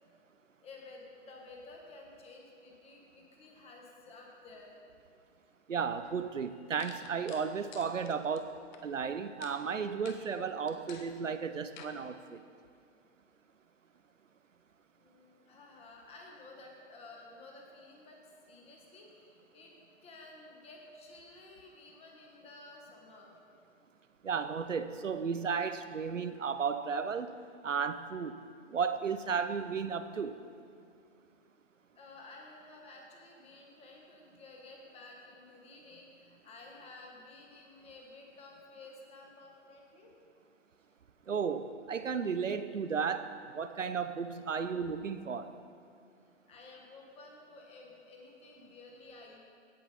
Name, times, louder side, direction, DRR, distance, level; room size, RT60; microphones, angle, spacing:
voice 1, 0.6-4.7 6.5-6.6 14.9-18.2 18.5-19.7 20.0-23.3 31.9-40.1 46.5-49.4, left 2 dB, 15° left, 0 dB, 1.4 m, -53 dB
voice 2, 5.7-12.4 24.2-27.3 27.6-28.3 28.7-30.4 41.3-43.3 43.5-45.5, right 6 dB, 90° right, 11 dB, 0.7 m, -34 dB
sound 1, 6.0-6.1 6.8-8.8 9.4-9.6 10.0-10.2 10.7-11.1 11.8-11.9, left 6 dB, 40° left, 0.9 m, -51 dB
16.5 x 5.8 x 3.9 m, 2.3 s
figure-of-eight pair, 120°, 37 cm